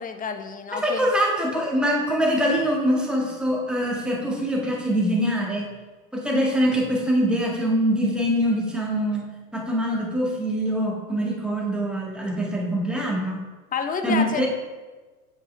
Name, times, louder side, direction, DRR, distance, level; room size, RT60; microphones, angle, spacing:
voice 1, 0.0-1.1 13.7-14.5, left 6 dB, 20° left, 7 dB, 0.7 m, -29 dB
voice 2, 0.7-5.6 6.1-9.3 9.5-13.4 14.0-14.5, equal, ahead, -2 dB, 1.8 m, -24 dB
7.7 x 7.3 x 3.4 m, 1.3 s
hypercardioid pair, 105°, 43 cm